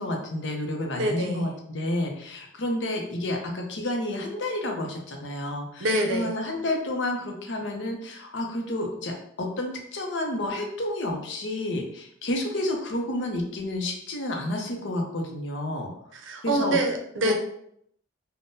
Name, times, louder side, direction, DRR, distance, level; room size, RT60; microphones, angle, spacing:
voice 1, 0.0-15.9 16.4-16.8 17.2-17.3, left 1 dB, 65° left, 2 dB, 0.6 m, -30 dB
voice 2, 0.9-1.5 5.8-6.4 16.1-17.3, right 1 dB, 80° right, 3 dB, 0.5 m, -26 dB
3.6 x 2.1 x 2.6 m, 0.70 s
head